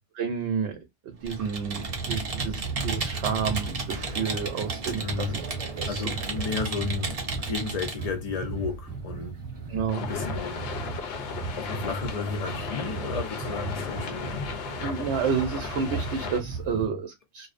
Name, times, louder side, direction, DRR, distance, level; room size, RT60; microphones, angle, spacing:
voice 1, 0.1-0.8 1.0-5.4 5.8-6.0 9.7-10.1 14.8-17.5, right 6 dB, 70° right, 0.8 m, -30 dB
Computer keyboard, 1.2-8.1, right 3 dB, 50° right, 0.4 m, -33 dB
sound 1, 1.9-16.9, right 5 dB, 25° right, 0.8 m, -37 dB
voice 2, 5.0-5.4 5.9-9.4 10.0-10.7 11.6-14.4 16.7-16.9, left 5 dB, 80° left, 0.3 m, -33 dB
sound 2, 9.9-16.4, left 6 dB, 65° left, 0.7 m, -35 dB
2.5 x 2.0 x 2.4 m
omnidirectional pair, 1.3 m